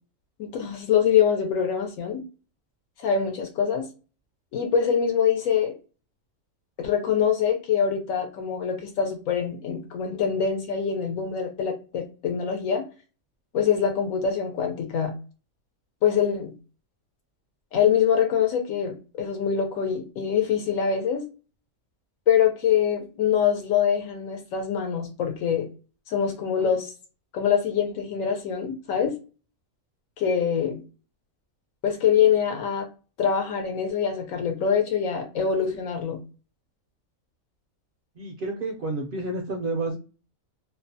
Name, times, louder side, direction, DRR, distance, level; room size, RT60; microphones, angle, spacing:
voice 1, 0.4-2.2 3.0-3.9 4.5-5.7 6.8-12.9 13.5-15.1 16.0-16.5 17.7-21.3 22.3-25.7 26.1-26.9 27.3-29.1 30.2-30.8 31.8-32.9 33.2-36.2, left 7 dB, 80° left, 3 dB, 1.0 m, -24 dB
voice 2, 38.2-40.0, right 2 dB, 65° right, 1 dB, 0.5 m, -30 dB
2.6 x 2.1 x 2.6 m, 0.33 s
omnidirectional pair, 1.4 m